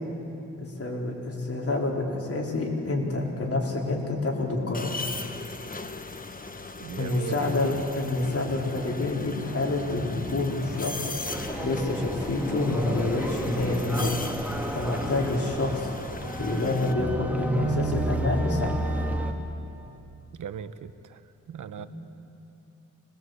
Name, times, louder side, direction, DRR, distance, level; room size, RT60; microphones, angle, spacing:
voice 1, 0.6-4.9 7.0-11.1 11.6-14.2 14.7-15.9 16.4-18.8 21.8-21.9, left 2 dB, 45° left, -1 dB, 4.3 m, -28 dB
sound 1, 4.7-16.9, left 3 dB, 25° left, 1.2 m, -38 dB
voice 2, 6.8-7.8 20.3-21.2 21.5-21.9, right 8 dB, 75° right, 12 dB, 0.9 m, -38 dB
sound 2, 7.3-15.7, equal, 10° left, 2.7 m, -43 dB
sound 3, 11.2-19.3, right 1 dB, 5° right, 1.9 m, -32 dB
25.5 x 20.5 x 8.0 m, 2.8 s
cardioid pair, 90°, 31 cm